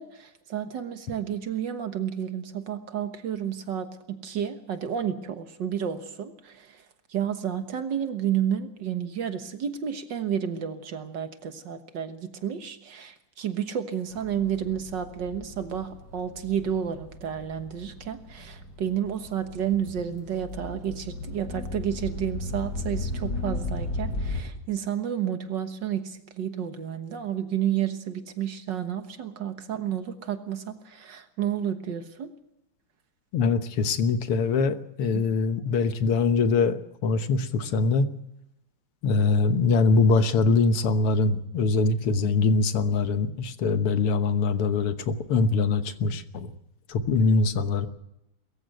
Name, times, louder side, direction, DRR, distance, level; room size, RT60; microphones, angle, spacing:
voice 1, 0.0-6.8 7.1-32.3 42.4-42.5, right 9 dB, 60° right, 8 dB, 1.9 m, -31 dB
sound 1, 14.1-24.4, left 2 dB, 45° left, 4.8 m, -36 dB
voice 2, 33.3-38.1 39.0-46.5 46.9-47.9, left 4 dB, 90° left, 9 dB, 2.2 m, -23 dB
22.5 x 14.5 x 7.8 m, 0.85 s
omnidirectional pair, 2.4 m